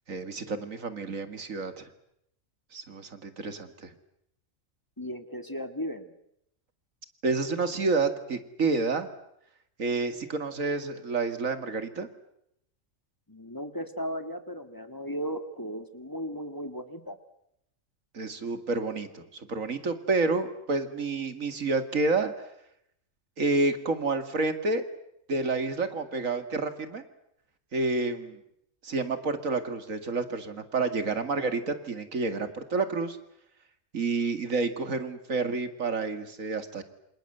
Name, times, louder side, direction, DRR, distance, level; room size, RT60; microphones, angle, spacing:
voice 1, 0.1-1.9 2.7-3.9 7.2-9.1 9.8-12.1 18.1-22.3 23.4-24.9 25.3-27.0 27.7-28.4 28.8-33.2 33.9-36.8, right 3 dB, 85° right, 9 dB, 2.6 m, -29 dB
voice 2, 5.0-6.1 13.3-17.2, equal, 15° left, 8 dB, 2.0 m, -36 dB
28.0 x 26.5 x 8.0 m, 0.77 s
omnidirectional pair, 1.3 m